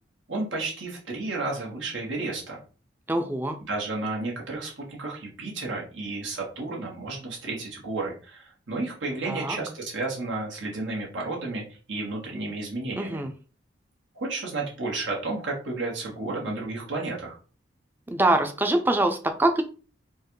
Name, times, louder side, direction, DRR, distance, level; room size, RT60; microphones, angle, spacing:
voice 1, 0.3-2.6 3.7-13.2 14.2-17.4, right 3 dB, 75° right, -2 dB, 1.8 m, -32 dB
voice 2, 3.1-3.6 9.2-9.6 13.0-13.3 18.1-19.6, right 1 dB, 10° right, 6 dB, 0.5 m, -24 dB
4.5 x 2.5 x 4.7 m, 0.37 s
head